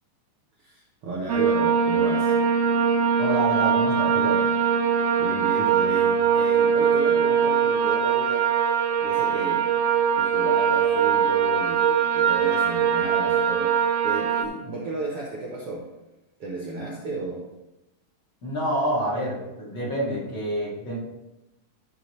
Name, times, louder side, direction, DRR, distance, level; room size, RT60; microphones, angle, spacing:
voice 1, 0.6-2.3 5.2-8.5 9.0-9.7 10.1-15.9 16.4-17.4, right 2 dB, 60° right, -2 dB, 1.6 m, -34 dB
sound 1, 1.3-14.4, right 7 dB, 80° right, 1.4 m, -22 dB
voice 2, 3.2-4.4 14.6-14.8 18.4-21.0, right 1 dB, 40° left, -7 dB, 2.9 m, -28 dB
12.0 x 5.8 x 3.2 m, 0.95 s
omnidirectional pair, 3.8 m